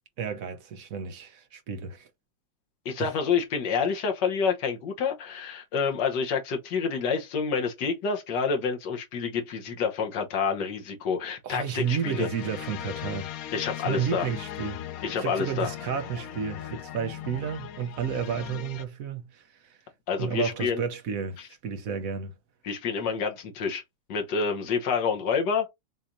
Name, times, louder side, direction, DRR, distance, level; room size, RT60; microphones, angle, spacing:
voice 1, 0.2-2.1 3.0-3.1 11.4-13.4 13.8-14.8 15.2-19.8 20.2-22.4, right 7 dB, 60° right, 1.0 m, -32 dB
voice 2, 2.8-12.3 13.5-14.3 15.0-15.7 20.1-20.8 22.6-23.8 24.1-25.7, left 5 dB, 65° left, 1.6 m, -28 dB
sound 1, 11.6-18.8, left 11 dB, 90° left, 0.7 m, -39 dB
5.8 x 3.2 x 2.6 m
omnidirectional pair, 2.1 m